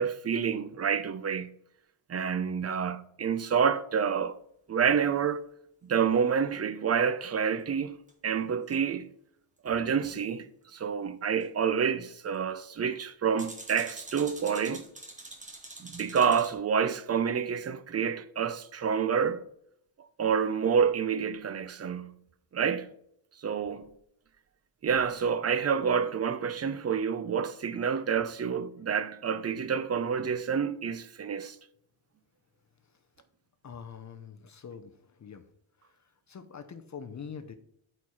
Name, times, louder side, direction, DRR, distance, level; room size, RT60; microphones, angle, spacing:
voice 1, 0.0-1.5 2.1-4.3 4.7-5.4 5.8-8.0 8.2-9.1 9.6-10.5 10.7-14.8 15.8-19.4 20.2-22.2 22.5-22.9 23.4-23.9 24.8-31.6, right 7 dB, 30° right, 0.4 m, -28 dB
sound 1, 8.1-8.2 8.7-8.8 11.4-11.5 13.4-16.5, right 2 dB, 15° right, 1.4 m, -45 dB
voice 2, 33.6-35.5 35.8-37.5, left 6 dB, 35° left, 0.6 m, -45 dB
8.3 x 4.4 x 4.8 m
wide cardioid pair, 160°, 50 cm